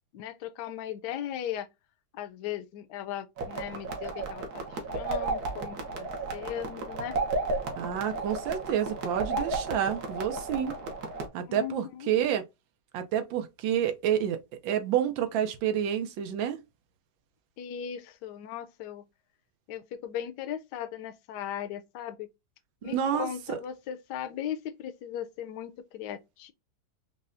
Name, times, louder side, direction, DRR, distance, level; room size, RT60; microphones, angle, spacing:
voice 1, 0.1-1.7 2.1-7.1 11.4-12.1 17.6-19.1 19.7-22.3 22.8-26.5, left 10 dB, 75° left, 1.1 m, -38 dB
sound 1, 3.4-11.3, right 3 dB, 60° right, 1.4 m, -33 dB
voice 2, 7.7-10.7 11.3-12.4 12.9-16.6 22.8-23.6, right 9 dB, 90° right, 1.4 m, -29 dB
5.4 x 2.2 x 2.5 m
omnidirectional pair, 2.0 m